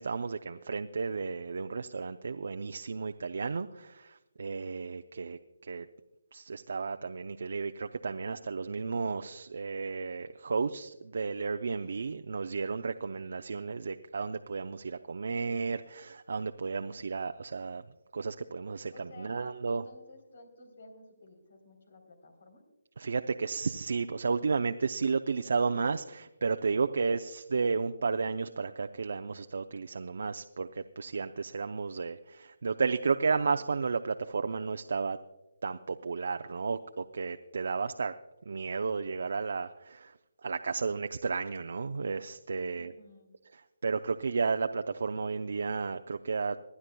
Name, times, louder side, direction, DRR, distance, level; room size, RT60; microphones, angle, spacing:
voice 1, 0.0-5.9 6.3-17.8 18.1-19.8 23.0-35.2 35.6-38.1 38.5-40.1 40.4-42.9 43.5-46.6, right 4 dB, 65° right, 7 dB, 0.5 m, -33 dB
voice 2, 18.9-22.6 42.7-43.4, left 2 dB, 60° left, 6 dB, 3.5 m, -54 dB
25.5 x 11.0 x 2.3 m, 1.0 s
figure-of-eight pair, 155°, 0 cm